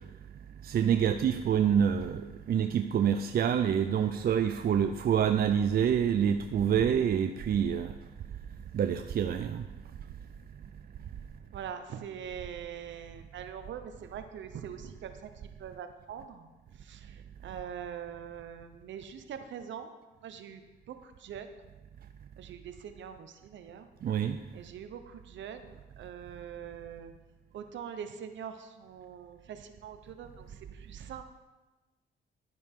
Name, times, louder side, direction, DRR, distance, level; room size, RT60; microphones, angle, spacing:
voice 1, 0.6-7.9 8.7-9.7 24.0-24.4, right 8 dB, 50° right, 8 dB, 0.5 m, -27 dB
voice 2, 11.5-16.5 16.8-19.9 20.2-20.6 20.9-21.7 22.4-23.9 24.5-27.1 27.5-31.2, right 8 dB, 70° right, 8 dB, 1.0 m, -43 dB
11.5 x 9.5 x 3.7 m, 1.2 s
cardioid pair, 90°, 20 cm